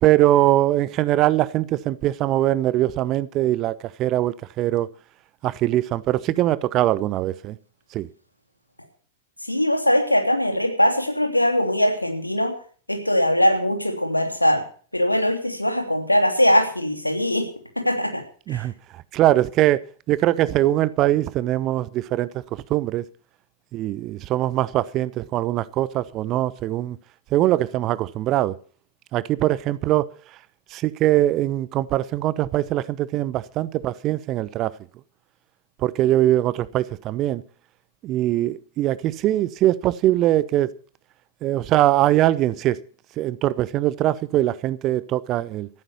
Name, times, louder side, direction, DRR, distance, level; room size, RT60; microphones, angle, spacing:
voice 1, 0.0-4.9 5.4-7.6 7.9-8.1 18.5-23.1 23.7-27.0 27.3-28.6 29.1-30.1 30.7-34.7 35.8-37.4 38.0-40.8 41.4-42.8 43.2-45.7, right 14 dB, 35° right, 0.8 m, -22 dB
voice 2, 9.4-12.6 12.9-14.6 14.9-17.5 17.8-18.2 18.5-18.6, left 1 dB, 85° left, 3.0 m, -21 dB
14.5 x 9.2 x 7.0 m
figure-of-eight pair, 90°, 0 cm